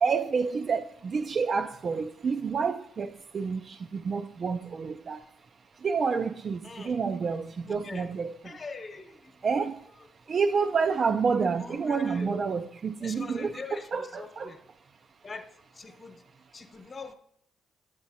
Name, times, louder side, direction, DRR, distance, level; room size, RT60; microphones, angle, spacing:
voice 1, 0.0-5.2 5.8-8.3 9.4-9.7 10.3-14.5, right 5 dB, 45° right, 0.4 m, -29 dB
voice 2, 6.6-7.0 7.6-8.1 8.4-9.7 11.5-12.5 13.0-14.6 15.2-16.2 16.5-17.1, left 4 dB, 35° left, 1.0 m, -43 dB
12.0 x 8.2 x 2.8 m
cardioid pair, 90°, 0 cm